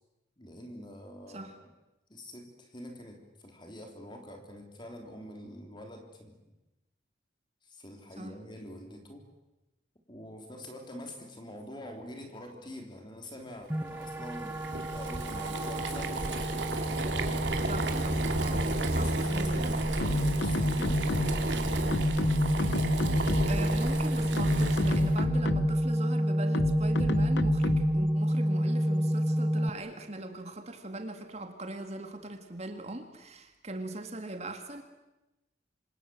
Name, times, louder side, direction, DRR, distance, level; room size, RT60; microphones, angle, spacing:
voice 1, 0.4-1.5 2.1-6.4 7.6-9.3 10.1-14.6 14.9-16.2 16.8-17.5 18.5-21.7, left 1 dB, 25° left, 3 dB, 3.5 m, -45 dB
sound 1, 13.7-29.7, equal, 10° right, 0.9 m, -30 dB
Boiling, 13.9-25.2, right 2 dB, 75° right, 3.0 m, -33 dB
voice 2, 17.6-18.7 19.0-19.7 23.4-34.8, right 2 dB, 35° right, 6 dB, 2.2 m, -40 dB
sound 2, 20.0-21.5 21.9-23.7 24.2-25.9 26.5-28.1, left 1 dB, 75° left, 1.0 m, -30 dB
27.0 x 27.0 x 7.8 m, 1.0 s
head